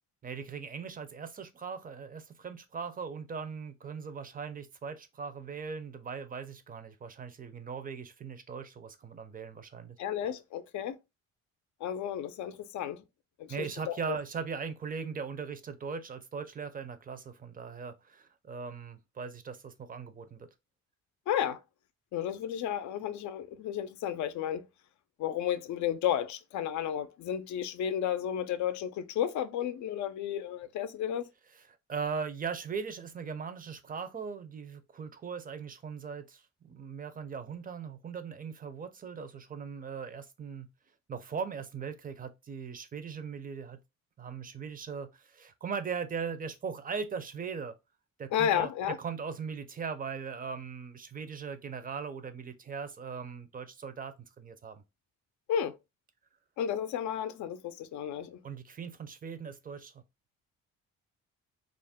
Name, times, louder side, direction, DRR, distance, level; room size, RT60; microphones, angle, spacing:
voice 1, 0.2-10.0 13.5-20.5 31.9-40.7 41.1-43.8 44.2-47.8 48.2-54.8 58.4-60.0, right 6 dB, 30° right, 0.5 m, -39 dB
voice 2, 10.0-11.0 11.8-13.0 13.4-14.2 21.3-21.6 22.1-24.7 25.2-31.3 48.3-49.0 55.5-55.8 56.6-58.4, left 9 dB, 70° left, 0.4 m, -32 dB
2.5 x 2.1 x 3.4 m
cardioid pair, 90°, 30 cm